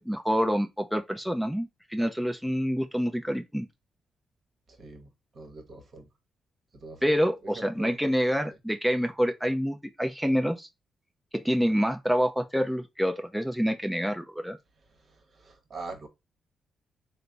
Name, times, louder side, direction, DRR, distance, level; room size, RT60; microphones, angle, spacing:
voice 1, 0.0-3.7 7.0-10.7 11.3-14.6, equal, 5° right, 0.5 m, -27 dB
voice 2, 4.8-6.1 6.7-7.1 7.5-8.0 15.0-16.1, right 3 dB, 55° right, 1.0 m, -43 dB
3.2 x 2.0 x 3.8 m
supercardioid pair, 55°, 0 cm